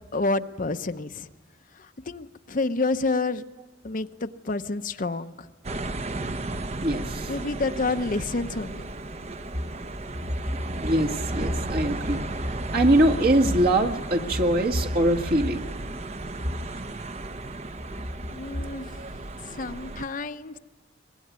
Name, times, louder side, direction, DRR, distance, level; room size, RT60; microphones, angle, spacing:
voice 1, 0.1-1.3 1.8-3.4 3.8-5.5 7.3-8.8 18.3-20.6, left 3 dB, 45° left, 9 dB, 0.7 m, -29 dB
sound 1, 5.6-20.0, right 2 dB, 35° right, 0.8 m, -35 dB
voice 2, 6.8-7.3 10.5-12.2 12.7-15.7 19.0-19.1, right 1 dB, 50° right, 1 dB, 1.8 m, -23 dB
23.5 x 21.0 x 9.5 m, 1.2 s
head